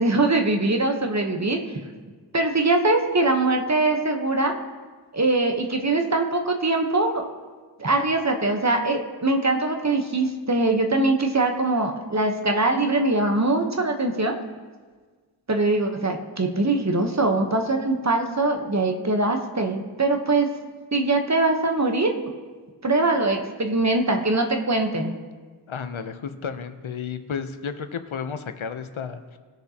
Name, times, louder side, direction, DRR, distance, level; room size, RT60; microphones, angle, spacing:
voice 1, 0.0-1.6 2.3-4.5 5.1-7.2 7.8-14.4 15.5-20.5 20.9-22.1 22.8-25.1, right 2 dB, 35° right, 4 dB, 1.0 m, -22 dB
voice 2, 25.7-29.4, left 6 dB, 85° left, 9 dB, 0.8 m, -32 dB
19.5 x 6.7 x 2.8 m, 1.5 s
wide cardioid pair, 70°, 46 cm